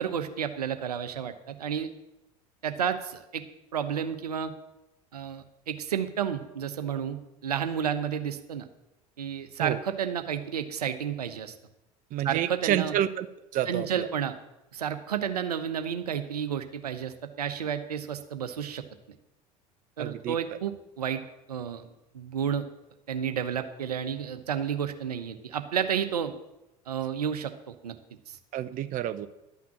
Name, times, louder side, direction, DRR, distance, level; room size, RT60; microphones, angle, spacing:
voice 1, 0.0-1.9 2.6-3.4 3.7-4.5 5.1-8.7 9.2-11.5 12.2-12.9 13.7-14.3 14.7-18.8 20.0-21.2 21.5-21.9 22.1-22.7 23.1-26.3 26.9-27.9 28.3-28.4, right 8 dB, 80° right, 9 dB, 0.9 m, -31 dB
voice 2, 12.1-13.3 13.5-14.1 20.0-20.4 28.5-29.3, right 12 dB, 45° right, 10 dB, 0.7 m, -29 dB
11.5 x 6.0 x 8.6 m, 0.91 s
figure-of-eight pair, 70°, 20 cm